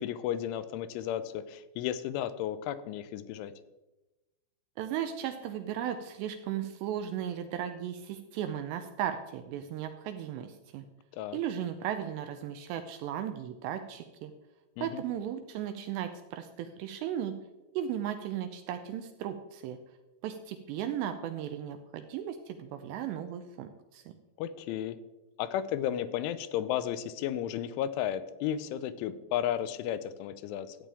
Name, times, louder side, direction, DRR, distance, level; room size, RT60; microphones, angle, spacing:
voice 1, 0.0-3.5 11.1-11.4 14.8-15.0 24.4-25.0 25.4-30.8, left 10 dB, 85° left, 13 dB, 3.1 m, -33 dB
voice 2, 4.8-10.9 11.3-14.3 14.8-17.4 17.7-19.8 20.2-24.0, right 10 dB, 80° right, 8 dB, 2.5 m, -36 dB
13.5 x 8.7 x 3.4 m, 1.1 s
omnidirectional pair, 5.4 m